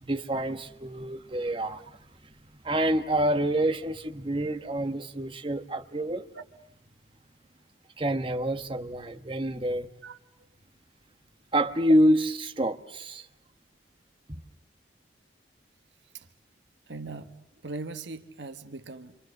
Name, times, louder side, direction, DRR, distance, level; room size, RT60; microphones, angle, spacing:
voice 1, 0.0-1.8 2.6-6.3 8.0-9.9 11.5-13.3 14.3-14.4, right 1 dB, 30° right, 1.2 m, -27 dB
voice 2, 16.9-17.3 17.6-19.2, right 3 dB, 85° right, 1.4 m, -39 dB
28.5 x 25.5 x 6.6 m
head